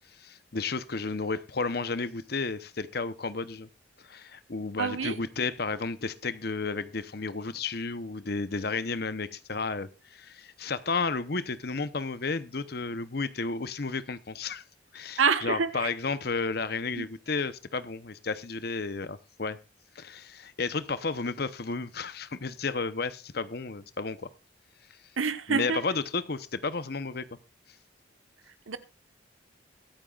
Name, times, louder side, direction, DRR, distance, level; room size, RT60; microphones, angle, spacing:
voice 1, 0.1-3.7 4.0-14.6 14.9-19.6 19.9-24.3 25.5-27.3, left 4 dB, 50° left, 0.8 m, -32 dB
voice 2, 4.8-5.2 15.2-15.9 17.0-17.1 25.2-25.8 28.5-28.8, right 5 dB, 90° right, 1.2 m, -27 dB
23.0 x 8.9 x 2.4 m
head